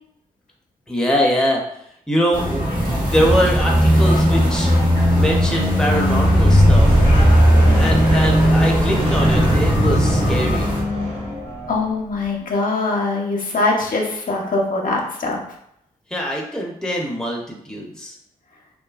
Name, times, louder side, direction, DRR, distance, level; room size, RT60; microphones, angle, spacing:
voice 1, 0.9-1.6 2.1-4.7 5.1-7.1 7.7-10.8 16.1-18.1, equal, 5° left, -1 dB, 0.7 m, -23 dB
sound 1, 2.3-10.8, equal, 60° right, 1.0 m, -24 dB
sound 2, 2.9-11.7, equal, 35° right, 1.1 m, -17 dB
voice 2, 11.7-15.4, left 3 dB, 60° left, -1 dB, 0.6 m, -22 dB
2.6 x 2.4 x 2.4 m, 0.74 s
supercardioid pair, 45°, 16 cm